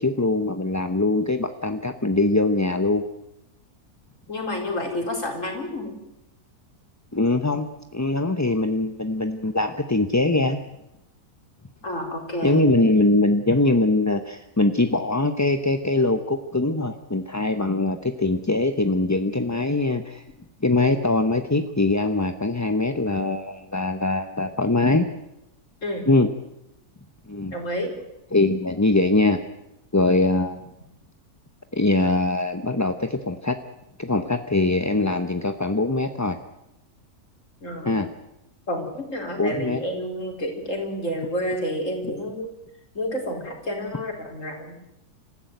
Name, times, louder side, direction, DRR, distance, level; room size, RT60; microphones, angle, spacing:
voice 1, 0.0-3.0 7.1-7.7 7.9-10.6 12.4-20.2 20.6-25.1 26.1-26.3 27.3-27.5 28.3-29.4 29.9-30.7 31.7-33.6 34.0-36.4 37.8-38.1 39.4-39.8, left 2 dB, 15° left, 7 dB, 0.7 m, -22 dB
voice 2, 4.3-5.9 11.8-12.6 25.8-26.1 27.5-27.9 37.6-38.0 38.7-42.5 42.9-44.8, left 1 dB, 55° left, 3 dB, 4.8 m, -29 dB
26.5 x 15.0 x 9.3 m, 0.87 s
omnidirectional pair, 1.6 m